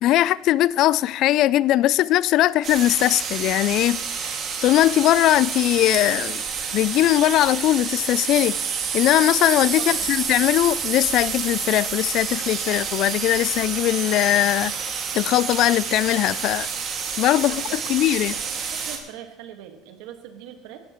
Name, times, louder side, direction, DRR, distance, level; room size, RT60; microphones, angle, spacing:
voice 1, 0.0-4.3 4.6-6.4 6.7-8.6 8.9-14.7 15.1-16.7 17.2-18.3, left 14 dB, 60° left, 0.3 m, -20 dB
sound 1, 2.6-19.0, right 6 dB, 45° right, 2.1 m, -29 dB
voice 2, 9.8-10.1 17.3-20.8, right 10 dB, 75° right, 1.6 m, -42 dB
16.5 x 11.5 x 3.1 m
supercardioid pair, 100°, 0 cm